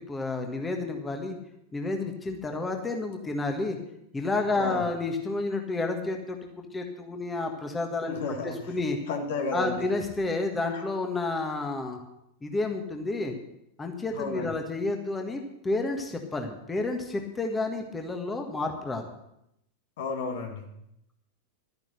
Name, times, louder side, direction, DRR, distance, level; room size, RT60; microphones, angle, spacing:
voice 1, 0.1-1.4 1.7-3.8 4.1-6.4 6.7-9.0 9.5-12.0 12.4-13.3 13.8-19.1, left 3 dB, 15° left, 4 dB, 1.7 m, -30 dB
voice 2, 8.1-8.6 9.1-9.8 10.7-10.8 14.1-14.5 20.0-20.6, left 3 dB, 55° left, 4 dB, 2.0 m, -32 dB
12.5 x 10.5 x 6.6 m, 0.80 s
figure-of-eight pair, 90°, 0 cm